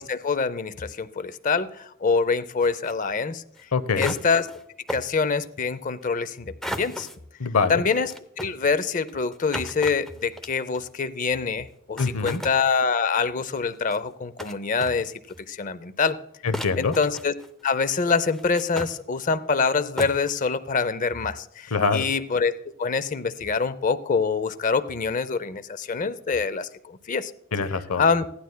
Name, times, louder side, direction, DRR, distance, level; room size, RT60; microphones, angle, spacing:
voice 1, 0.0-3.4 4.0-4.5 4.9-7.1 7.7-15.2 15.5-16.2 16.8-17.3 17.6-22.5 22.8-27.3 28.0-28.3, left 5 dB, 35° left, 14 dB, 0.5 m, -25 dB
sound 1, 2.6-2.9 3.6-3.7 4.0-4.6 4.9-5.1 6.6-7.2 7.9-10.9 11.7-11.8 12.0-12.6 13.6-14.0 14.4-14.5 14.8-15.4 16.1-16.2 16.5-17.6 18.3-19.0 19.6-19.7 20.0-20.3, equal, ahead, 0.7 m, -35 dB
voice 2, 3.7-4.2 7.4-7.8 12.0-12.4 16.4-16.9 21.7-22.1 27.5-28.0, left 4 dB, 80° left, 12 dB, 0.9 m, -24 dB
16.5 x 11.5 x 2.2 m, 0.75 s
head